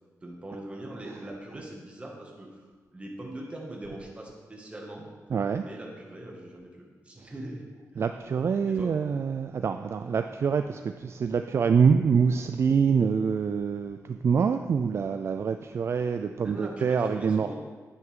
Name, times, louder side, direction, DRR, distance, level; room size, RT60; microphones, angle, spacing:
voice 1, 0.2-2.6 2.9-5.1 5.6-8.0 8.7-8.9 16.4-17.5, right 1 dB, 20° right, -1 dB, 2.0 m, -41 dB
voice 2, 5.3-5.6 8.0-17.5, right 6 dB, 50° right, 8 dB, 0.4 m, -25 dB
10.5 x 9.2 x 3.8 m, 1.4 s
wide cardioid pair, 120°, 6 cm